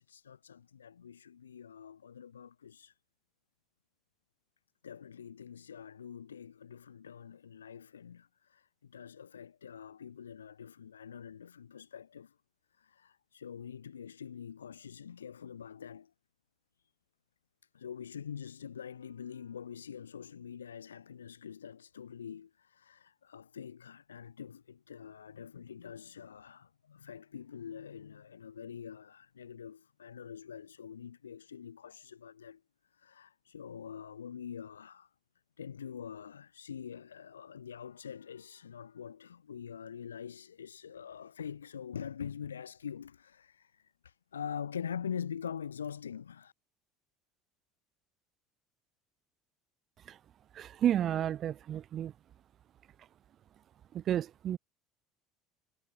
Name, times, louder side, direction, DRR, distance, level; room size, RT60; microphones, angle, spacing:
voice 1, 0.0-3.0 4.8-12.3 12.8-16.1 17.7-32.6 32.9-35.1 35.6-46.5, left 8 dB, 85° left, 4.0 m, -45 dB
voice 2, 50.6-52.1 53.9-54.6, right 10 dB, 45° right, 0.9 m, -31 dB
hypercardioid pair, 70°, 0 cm